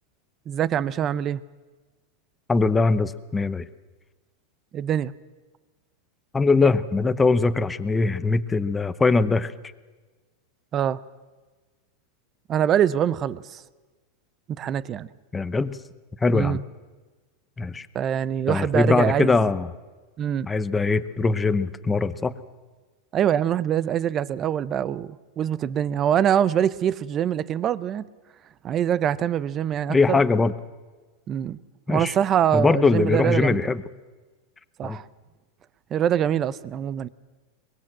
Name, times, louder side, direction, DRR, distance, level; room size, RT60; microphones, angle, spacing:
voice 1, 0.5-1.4 4.7-5.1 10.7-11.0 12.5-13.6 14.6-15.1 16.3-16.6 17.9-19.4 20.2-20.5 23.1-28.1 28.6-30.2 31.3-31.6 31.9-33.7 34.8-35.1 35.9-37.1, right 9 dB, 30° right, 0.7 m, -24 dB
voice 2, 2.5-3.6 6.3-9.5 15.3-15.7 16.2-16.6 17.6-17.9 18.5-19.7 20.5-22.3 29.9-30.5 31.9-32.1 32.5-33.8 34.8-35.0, left 3 dB, 10° left, 0.9 m, -21 dB
23.0 x 21.5 x 7.7 m
supercardioid pair, 140°, 0 cm